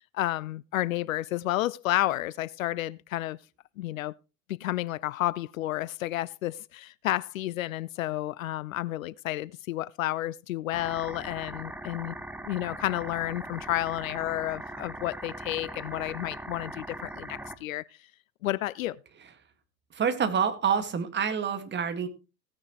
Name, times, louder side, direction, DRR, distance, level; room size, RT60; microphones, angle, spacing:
voice 1, 0.0-3.4 3.8-4.1 4.5-12.2 12.4-17.8 18.4-19.0, left 15 dB, 65° left, 0.5 m, -31 dB
sound 1, 10.7-17.5, right 1 dB, 5° right, 1.0 m, -40 dB
voice 2, 19.9-22.1, right 7 dB, 25° right, 2.0 m, -27 dB
16.5 x 9.6 x 3.1 m
figure-of-eight pair, 85°, 44 cm